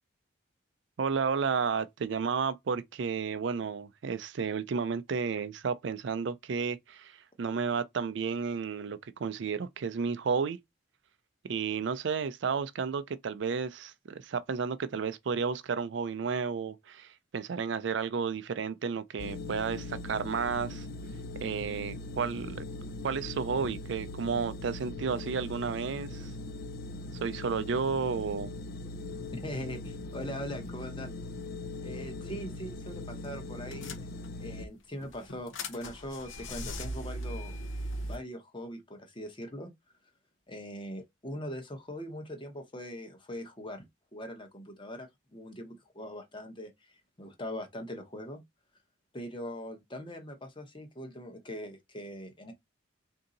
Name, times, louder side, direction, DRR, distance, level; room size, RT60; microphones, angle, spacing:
voice 1, 1.0-10.6 11.4-20.9 21.4-22.7 23.0-26.3 27.2-28.6, right 5 dB, 60° right, 0.4 m, -32 dB
sound 1, 19.2-34.7, left 2 dB, 50° left, 0.4 m, -40 dB
voice 2, 29.3-31.1 31.8-34.0 34.4-37.6 38.0-39.7 40.5-43.9 44.1-46.7 47.2-48.4 49.1-52.5, equal, 25° left, 0.9 m, -41 dB
sound 2, 32.7-33.0 33.2-33.3 33.7-34.5 35.0-38.2, equal, 75° left, 0.8 m, -38 dB
3.8 x 2.7 x 3.8 m
head